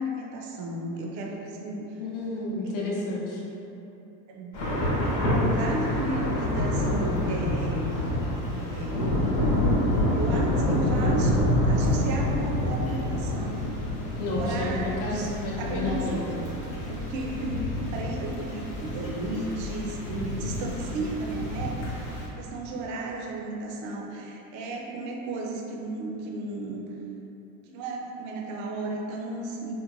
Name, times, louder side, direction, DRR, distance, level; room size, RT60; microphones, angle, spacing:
voice 1, 0.0-2.0 4.3-4.6 4.9-8.1 8.4-9.1 9.9-13.6 14.4-15.3 15.6-17.7 17.9-26.8 27.7-29.7, right 2 dB, 45° right, -1 dB, 0.4 m, -34 dB
voice 2, 2.0-3.4 14.2-16.2, left 2 dB, 45° left, -4 dB, 0.7 m, -31 dB
Thunder / Rain, 4.5-22.3, left 1 dB, 70° left, 1.0 m, -27 dB
2.9 x 2.1 x 2.5 m, 2.9 s
supercardioid pair, 100°, 45 cm